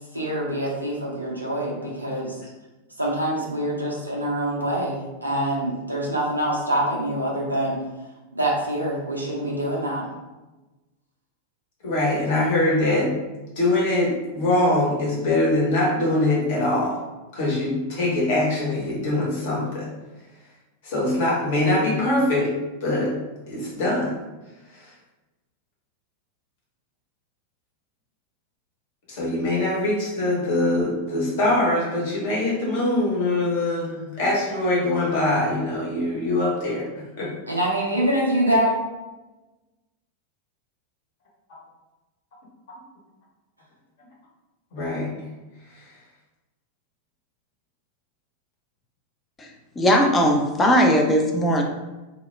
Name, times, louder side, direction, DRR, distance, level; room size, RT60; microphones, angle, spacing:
voice 1, 0.1-2.4 3.0-7.8 8.3-10.0 37.5-38.8, right 1 dB, 85° right, -3 dB, 0.5 m, -25 dB
voice 2, 11.8-13.1 13.6-17.0 17.3-19.9 20.8-22.5 22.8-23.1 23.5-24.1 29.1-36.9 37.2-37.3 44.7-45.1, left 1 dB, 50° left, -4 dB, 0.9 m, -23 dB
voice 3, 49.8-51.6, equal, 15° left, 2 dB, 0.4 m, -18 dB
2.1 x 2.1 x 3.1 m, 1.1 s
figure-of-eight pair, 90°, 0 cm